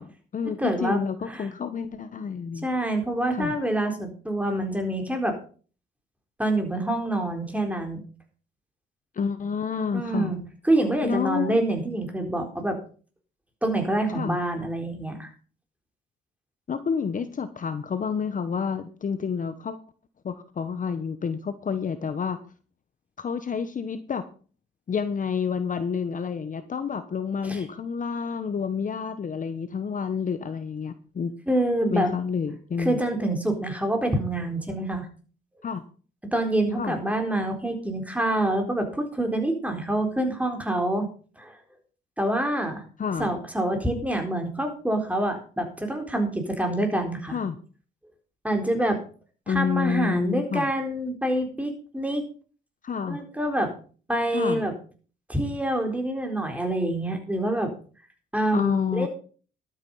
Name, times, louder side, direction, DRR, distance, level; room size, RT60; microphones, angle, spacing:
voice 1, 0.0-2.7 3.3-3.5 9.2-10.3 11.0-11.6 14.1-14.4 16.7-19.8 20.2-22.4 23.2-24.2 24.9-31.3 31.9-33.0 35.6-35.8 36.8-37.0 43.0-43.3 47.3-47.6 49.5-50.7 52.8-53.2 54.3-54.6 58.5-59.1, left 6 dB, 40° left, 11 dB, 1.1 m, -29 dB
voice 2, 0.6-1.0 1.3-1.5 2.6-5.4 6.4-8.0 9.9-12.8 13.6-15.3 27.4-27.6 31.5-32.1 32.8-35.1 36.3-41.1 41.4-41.5 42.2-42.8 43.2-47.4 48.4-49.0 49.5-52.2 53.1-53.7 54.1-54.7 55.3-57.7 58.3-59.1, right 1 dB, 5° right, 4 dB, 4.0 m, -26 dB
12.0 x 9.0 x 5.5 m, 0.40 s
cardioid pair, 90°, 20 cm